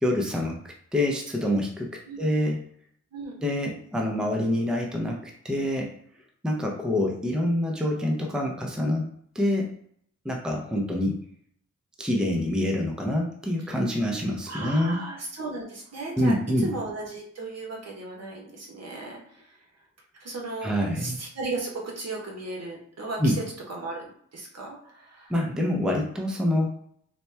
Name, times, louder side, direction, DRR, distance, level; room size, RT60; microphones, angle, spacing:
voice 1, 0.0-0.6 0.9-2.6 3.4-5.9 6.4-9.1 9.3-9.7 10.2-11.2 12.0-15.0 16.2-16.7 20.6-21.2 23.2-23.4 25.3-26.7, left 1 dB, 5° right, 0 dB, 0.5 m, -26 dB
voice 2, 14.5-19.6 20.2-23.4 23.7-25.3, right 2 dB, 60° right, -1 dB, 1.0 m, -36 dB
4.1 x 2.2 x 3.3 m, 0.66 s
wide cardioid pair, 115°, 29 cm